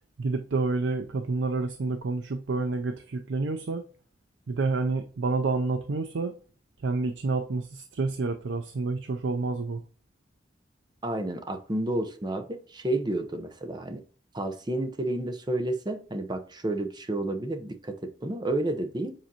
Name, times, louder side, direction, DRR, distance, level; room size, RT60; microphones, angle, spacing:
voice 1, 0.2-3.8 4.5-6.3 6.8-9.8, right 3 dB, 90° right, 0.5 m, -29 dB
voice 2, 11.0-14.0 14.3-19.1, right 1 dB, 25° right, 0.8 m, -30 dB
7.6 x 4.4 x 2.9 m
head